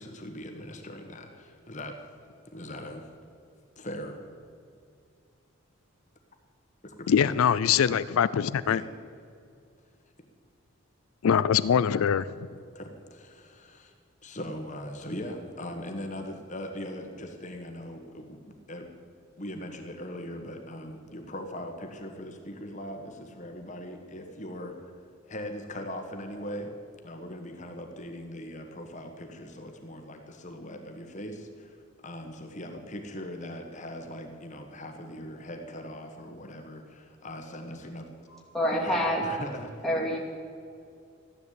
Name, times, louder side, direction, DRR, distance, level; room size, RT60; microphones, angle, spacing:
voice 1, 0.0-2.0 2.5-3.1 3.8-4.2 6.8-7.4 8.7-8.9 12.7-13.9 14.2-18.9 19.4-24.7 25.3-26.7 27.0-31.8 32.0-38.1 38.7-39.7, left 1 dB, 35° left, 4 dB, 1.4 m, -40 dB
voice 2, 7.1-8.8 11.2-12.5, left 8 dB, 80° left, 16 dB, 0.4 m, -23 dB
voice 3, 38.3-39.2 39.8-40.2, equal, ahead, -4 dB, 2.5 m, -27 dB
14.0 x 10.5 x 8.3 m, 2.4 s
head